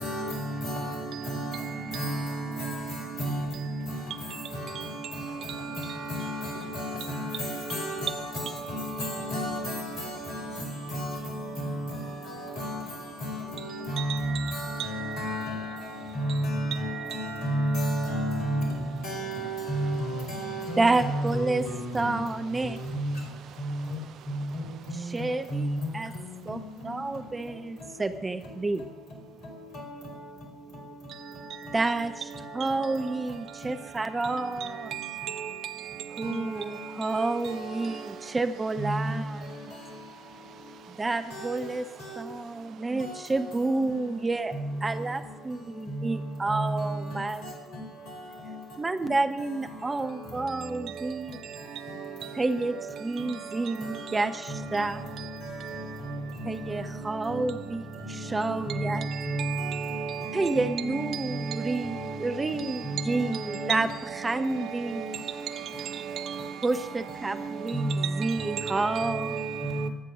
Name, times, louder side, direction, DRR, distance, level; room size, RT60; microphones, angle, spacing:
voice 1, 7.7-8.1 9.3-9.6 12.6-12.7 13.9-14.3 15.2-15.5 16.2-16.9 17.4-18.7 19.0-20.6 21.0-21.3 21.7-21.8 22.9-23.1 25.5-25.8 38.8-38.9 46.5-46.7 59.3-59.4 67.7-68.1, right 1 dB, 60° left, 4.8 m, -29 dB
voice 2, 20.8-21.7 21.9-22.8 24.9-26.1 26.4-28.9 31.7-32.2 32.5-34.9 36.2-39.6 40.9-41.9 42.2-44.5 44.8-47.4 48.8-51.5 52.3-55.1 56.4-59.1 60.3-63.9 64.2-65.1 66.6-69.4, right 3 dB, 25° right, 1.0 m, -29 dB
voice 3, 34.9-35.5 59.4-60.5 66.2-66.3 68.6-69.9, right 9 dB, 55° right, 0.6 m, -34 dB
22.0 x 8.9 x 6.4 m
figure-of-eight pair, 50°, 0 cm